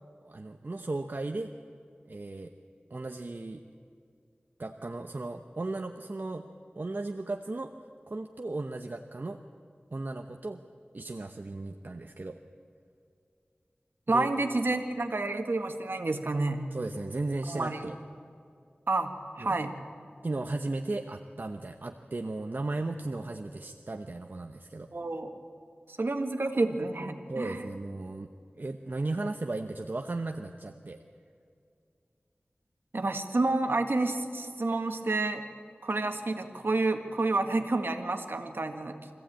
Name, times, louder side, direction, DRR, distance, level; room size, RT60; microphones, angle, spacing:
voice 1, 0.2-1.5 2.1-2.5 2.9-3.6 4.6-6.4 6.8-7.7 8.1-9.4 9.9-10.6 10.9-12.4 14.1-14.3 16.7-17.9 19.4-19.6 20.2-24.9 27.3-28.3 28.6-31.0, right 2 dB, 55° right, 5 dB, 0.9 m, -35 dB
voice 2, 14.1-16.7 17.5-17.9 18.9-19.8 24.9-25.3 25.9-27.7 32.9-35.4 35.8-39.1, right 2 dB, 70° right, 6 dB, 1.7 m, -29 dB
24.5 x 15.5 x 8.8 m, 2.4 s
wide cardioid pair, 50°, 4 cm